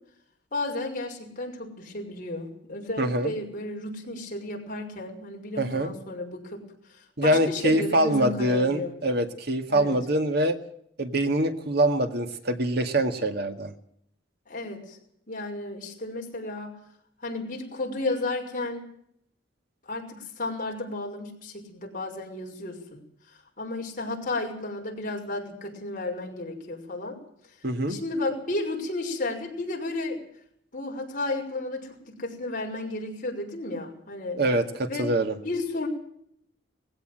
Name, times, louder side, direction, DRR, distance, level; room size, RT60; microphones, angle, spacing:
voice 1, 0.5-6.6 6.9-9.0 9.7-9.9 14.5-15.0 15.3-16.8 17.2-18.9 19.9-23.0 23.3-27.2 27.9-30.2 30.7-34.4 34.9-35.0 35.4-35.9, left 2 dB, 40° left, 1 dB, 6.1 m, -33 dB
voice 2, 3.0-3.3 5.6-5.9 7.2-10.6 11.0-13.7 27.6-28.0 34.4-35.3, right 1 dB, 55° right, 7 dB, 2.0 m, -24 dB
20.0 x 17.0 x 7.8 m, 0.70 s
head